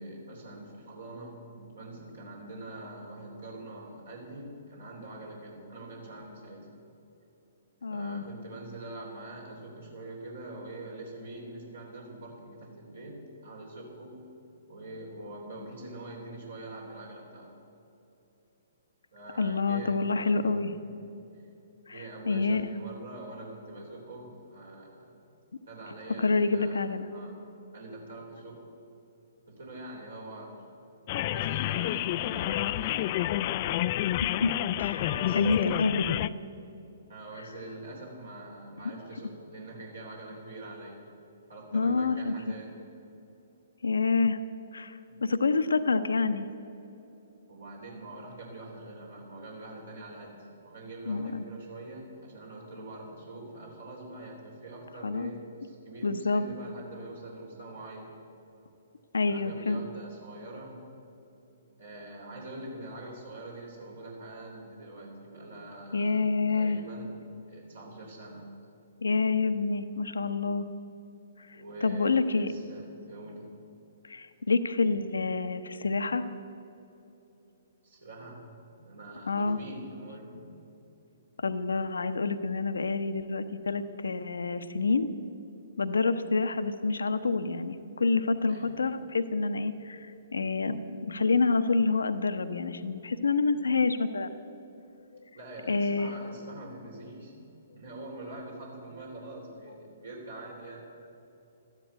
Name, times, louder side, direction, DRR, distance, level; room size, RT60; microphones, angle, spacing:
voice 1, 0.0-6.7 7.9-14.3 14.7-17.5 19.1-20.5 20.8-21.5 21.9-25.2 25.7-27.4 27.7-28.6 29.5-30.6 31.1-33.6 35.0-35.8 37.1-41.1 41.5-42.8 45.1-45.2 47.5-58.1 59.3-60.8 61.8-67.2 67.5-68.5 71.5-73.5 77.8-78.4 78.8-80.5 88.5-88.8 95.3-100.8, right 2 dB, 70° right, -2 dB, 3.3 m, -44 dB
voice 2, 7.8-8.2 19.4-20.7 21.9-22.6 26.2-27.1 34.2-34.5 34.8-36.3 41.7-42.3 43.8-44.4 44.7-46.5 51.1-51.4 55.0-55.3 56.0-56.5 59.1-59.8 65.9-66.8 69.0-70.6 71.8-72.5 74.0-76.2 79.3-79.6 81.4-85.1 85.8-94.3 95.7-96.1, left 4 dB, 75° left, 11 dB, 0.8 m, -27 dB
sound 1, 31.1-36.3, left 14 dB, 40° left, 0.3 m, -29 dB
13.0 x 10.5 x 8.2 m, 2.9 s
figure-of-eight pair, 125°, 0 cm